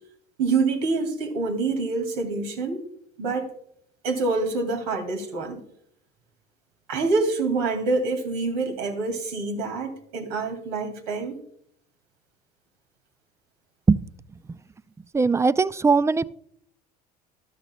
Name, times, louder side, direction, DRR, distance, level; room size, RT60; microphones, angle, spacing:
voice 1, 0.4-2.9 3.2-3.5 4.0-5.6 6.9-11.4, right 3 dB, 90° right, 5 dB, 2.2 m, -26 dB
voice 2, 15.1-16.2, right 4 dB, 15° right, 17 dB, 0.4 m, -19 dB
13.0 x 12.0 x 2.2 m, 0.69 s
supercardioid pair, 90°, 19 cm